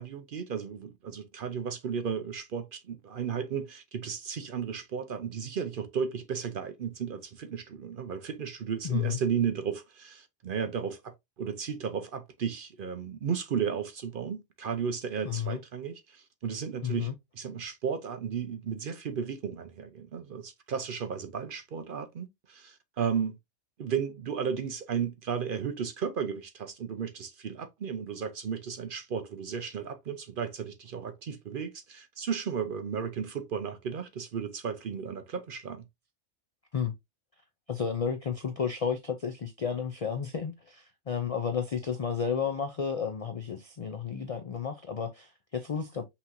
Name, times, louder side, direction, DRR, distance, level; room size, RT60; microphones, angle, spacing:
voice 1, 0.0-23.4 23.8-35.9, right 7 dB, 55° right, 0.6 m, -34 dB
voice 2, 8.8-9.2 15.2-15.6 16.8-17.1 36.7-36.9 37.7-46.1, left 7 dB, 65° left, 0.3 m, -32 dB
5.6 x 2.9 x 2.6 m
omnidirectional pair, 1.3 m